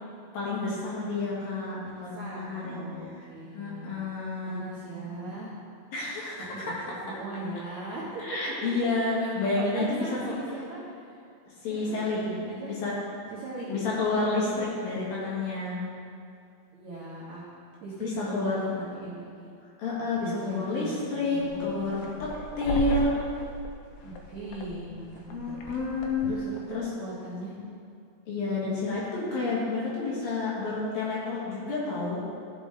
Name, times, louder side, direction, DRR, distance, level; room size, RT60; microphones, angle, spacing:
voice 1, 0.3-2.8 3.5-4.7 5.9-6.5 8.2-10.3 11.6-12.3 12.6-12.9 13.7-15.8 18.0-18.6 19.8-23.2 25.3-26.2 26.7-26.9 28.3-32.2, left 3 dB, 60° left, -6 dB, 3.3 m, -30 dB
voice 2, 2.1-3.9 4.5-5.5 6.5-8.4 9.2-9.3 9.6-10.8 11.7-12.7 13.3-13.7 14.5-14.6 16.7-17.4 17.8-19.5 20.1-21.0 21.3-22.1 24.0-25.6 26.2-27.6 28.6-28.9 30.2-30.3, right 2 dB, 70° right, -7 dB, 1.8 m, -39 dB
sound 1, 21.4-26.8, left 1 dB, 85° left, 1.9 m, -36 dB
14.0 x 6.4 x 3.7 m, 2.4 s
omnidirectional pair, 5.1 m